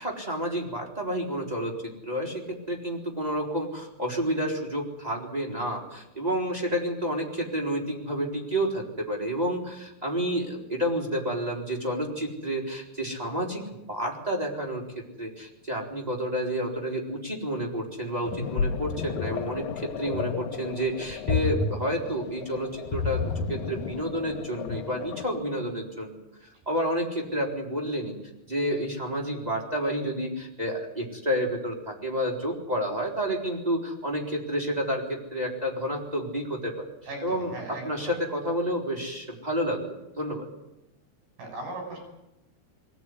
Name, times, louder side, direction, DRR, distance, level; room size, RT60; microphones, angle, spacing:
voice 1, 0.0-1.7 2.0-14.8 15.2-26.1 26.6-28.2 28.5-36.9 37.2-40.5, equal, 10° right, -2 dB, 3.5 m, -30 dB
sound 1, 18.3-25.3, left 5 dB, 75° left, 1.7 m, -31 dB
voice 2, 37.1-38.2 41.4-42.0, right 2 dB, 60° right, 2 dB, 8.5 m, -38 dB
22.5 x 17.0 x 9.8 m, 0.91 s
omnidirectional pair, 4.8 m